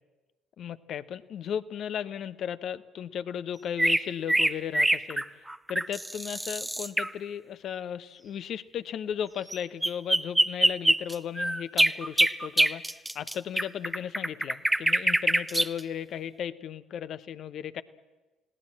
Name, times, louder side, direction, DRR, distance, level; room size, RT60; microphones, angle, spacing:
voice 1, 0.6-5.2 5.7-17.8, left 9 dB, 55° left, 14 dB, 0.9 m, -35 dB
sound 1, 3.8-7.1 9.5-9.6 9.8-15.8, right 1 dB, 10° right, 0.8 m, -25 dB
29.0 x 18.0 x 7.5 m, 1.2 s
hypercardioid pair, 55°, 0 cm